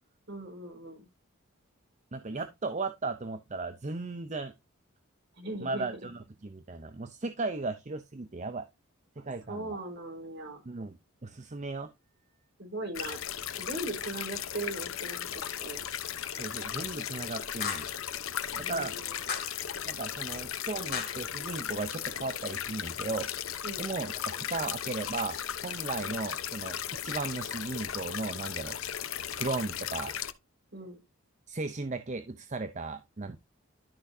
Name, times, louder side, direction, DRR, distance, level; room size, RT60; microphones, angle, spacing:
voice 1, 0.3-1.1 5.3-5.9 9.2-10.6 12.6-13.2 13.6-15.8 16.8-17.0 18.6-19.3 23.6-23.8 30.7-31.0, right 2 dB, 55° right, 4.4 m, -39 dB
voice 2, 2.1-4.5 5.6-8.7 9.2-9.8 10.7-11.0 11.2-11.9 16.3-17.9 18.5-19.0 19.8-23.3 23.8-25.4 25.6-28.8 29.4-30.2 31.5-33.4, right 3 dB, 35° right, 0.6 m, -36 dB
sound 1, 12.9-30.3, left 9 dB, 75° left, 0.9 m, -36 dB
sound 2, 16.2-16.4 17.6-18.0 19.3-19.7 20.9-21.3, left 7 dB, 45° left, 2.5 m, -36 dB
12.0 x 6.2 x 2.7 m
head